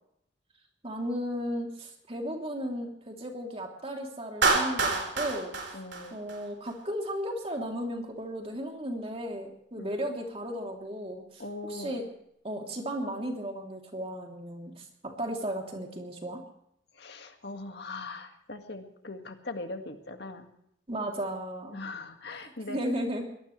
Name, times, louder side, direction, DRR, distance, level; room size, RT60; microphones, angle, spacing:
voice 1, 0.8-5.5 6.1-11.4 11.7-12.0 12.4-16.4 20.9-21.8 22.4-23.3, equal, 30° right, 2 dB, 3.1 m, -35 dB
Clapping, 4.4-6.7, right 3 dB, 75° right, 3.9 m, -27 dB
voice 2, 5.7-6.2 9.8-9.9 11.4-12.0 16.9-20.5 21.7-22.8, left 2 dB, 60° left, 5 dB, 1.9 m, -40 dB
23.5 x 18.5 x 3.3 m, 0.74 s
head